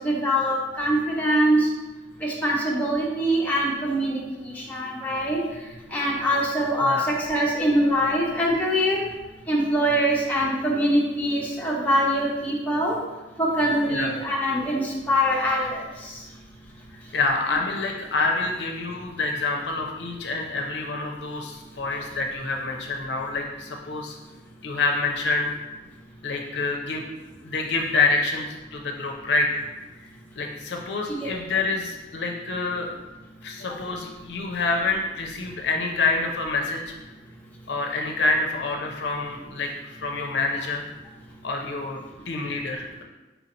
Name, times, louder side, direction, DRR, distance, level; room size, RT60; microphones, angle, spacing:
voice 1, 0.0-1.6 2.2-4.2 4.7-5.4 5.9-9.0 9.5-12.9 13.4-15.8 31.1-31.3, equal, 10° left, -4 dB, 0.8 m, -23 dB
voice 2, 17.1-24.2 24.6-25.5 26.2-27.0 27.4-29.6 30.4-32.9 33.4-36.9 37.7-40.8 41.4-42.0 42.3-43.0, left 3 dB, 65° left, 1 dB, 0.6 m, -27 dB
4.4 x 2.7 x 4.2 m, 1.1 s
head